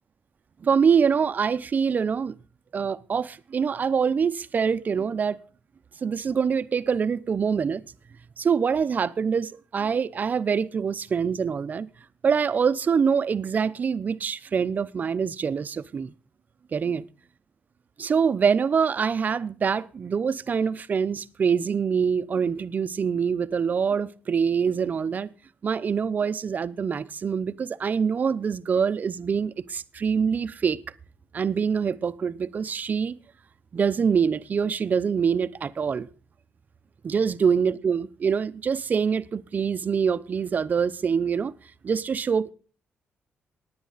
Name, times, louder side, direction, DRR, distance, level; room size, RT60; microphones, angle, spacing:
voice 1, 0.6-2.3 2.7-5.4 6.0-7.8 8.4-11.9 12.2-16.1 16.7-17.0 18.0-25.3 25.6-30.8 31.3-33.2 33.7-36.1 37.0-41.5 41.8-42.5, right 6 dB, 45° right, 0.7 m, -25 dB
18.0 x 9.5 x 4.0 m
cardioid pair, 100°, 4 cm